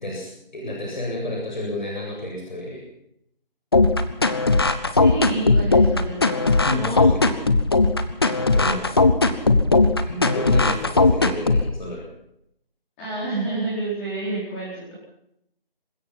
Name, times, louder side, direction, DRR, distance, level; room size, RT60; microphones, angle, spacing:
voice 1, 0.0-2.8 6.7-7.4 8.4-8.8 10.0-12.1, left 1 dB, 50° left, -1 dB, 7.8 m, -29 dB
sound 1, 3.7-11.7, left 3 dB, 25° left, 1.1 m, -18 dB
voice 2, 4.9-6.5 13.0-14.9, right 2 dB, 10° left, -9 dB, 4.9 m, -29 dB
27.0 x 16.0 x 6.0 m, 0.76 s
figure-of-eight pair, 165°, 29 cm